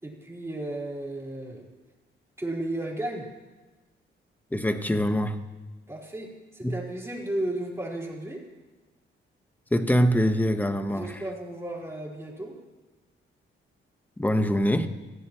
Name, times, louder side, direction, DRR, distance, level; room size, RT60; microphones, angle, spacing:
voice 1, 0.0-1.7 2.4-3.3 5.9-8.4 10.9-12.5, right 1 dB, 15° right, -3 dB, 4.6 m, -34 dB
voice 2, 4.5-5.4 6.6-6.8 9.7-11.2 14.2-14.9, equal, 10° left, 8 dB, 1.1 m, -24 dB
23.5 x 15.5 x 3.1 m, 1.2 s
cardioid pair, 100°, 21 cm